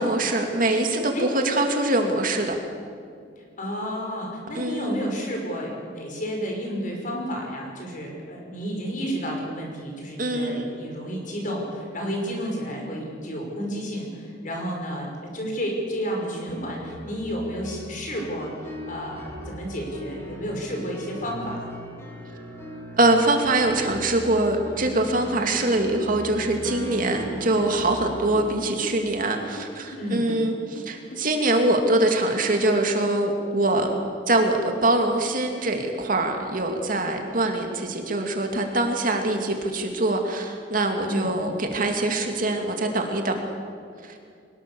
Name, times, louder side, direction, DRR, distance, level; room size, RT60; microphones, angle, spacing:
voice 1, 0.0-2.5 4.5-5.0 10.2-10.7 23.0-34.0 34.3-43.4 44.0-44.1, right 2 dB, 50° right, 3 dB, 2.5 m, -23 dB
voice 2, 3.4-21.7 30.0-30.3 41.1-41.3, equal, 45° left, 0 dB, 5.7 m, -31 dB
sound 1, 16.5-28.7, equal, 15° left, 3.5 m, -38 dB
sound 2, 26.9-32.1, right 1 dB, 85° left, 3.9 m, -41 dB
23.0 x 20.0 x 7.1 m, 2.3 s
head